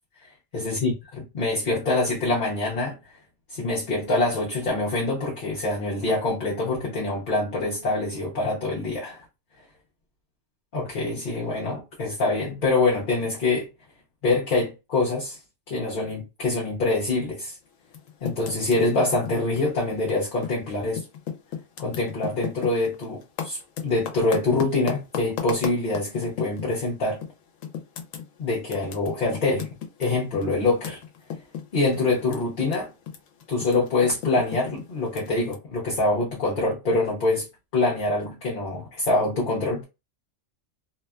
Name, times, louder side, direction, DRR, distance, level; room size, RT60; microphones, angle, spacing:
voice 1, 0.2-0.9 1.3-3.0 3.5-9.2 10.7-13.7 14.2-15.4 15.7-17.6 18.2-21.0 21.8-27.2 28.4-29.7 30.0-31.0 31.7-32.9 33.5-37.5 37.7-39.8, left 2 dB, 50° left, 0.8 m, -25 dB
Typing, 17.8-20.6 20.9-26.8 27.2-27.3 27.6-32.7 33.0-35.5, left 8 dB, 75° left, 1.0 m, -35 dB
2.8 x 2.2 x 2.2 m
omnidirectional pair, 1.4 m